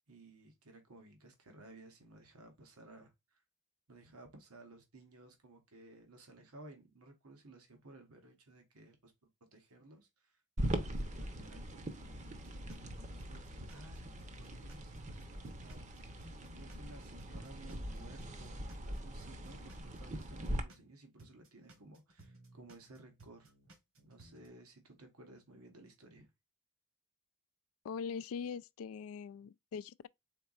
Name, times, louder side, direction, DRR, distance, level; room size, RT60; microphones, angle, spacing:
voice 1, 0.1-3.4 3.9-9.1 9.5-12.5 13.1-16.1 16.4-23.5 24.0-26.3, right 2 dB, 85° right, 1.2 m, -57 dB
sound 1, 10.6-20.6, right 1 dB, 35° right, 0.8 m, -41 dB
sound 2, 12.4-12.9 13.2-16.9 17.2-20.9 21.2-24.5, right 2 dB, 65° right, 1.5 m, -60 dB
voice 2, 27.8-30.1, left 6 dB, 70° left, 0.3 m, -42 dB
4.4 x 4.0 x 2.4 m
head